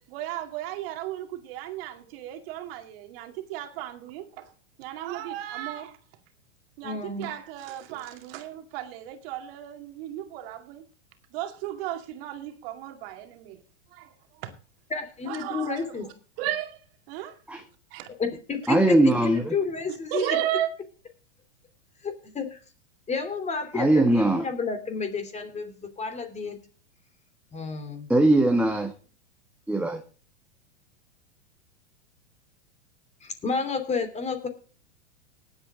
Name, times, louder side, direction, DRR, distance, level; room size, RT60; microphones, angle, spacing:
voice 1, 0.1-4.5 4.8-5.9 6.8-10.8 11.3-13.6 13.9-14.5 15.3-16.1 16.4-16.8 17.1-17.4 17.9-18.1 20.1-20.7, right 12 dB, 55° right, 2.3 m, -34 dB
voice 2, 6.8-7.3 14.9-16.1 18.2-20.4 22.0-22.6 23.1-26.6 27.5-28.1 33.2-34.5, left 4 dB, 20° left, 3.1 m, -31 dB
voice 3, 18.7-19.5 23.7-24.5 28.1-28.9 29.7-30.0, right 1 dB, 5° right, 1.3 m, -20 dB
19.0 x 8.3 x 3.7 m
hypercardioid pair, 110°, 35 cm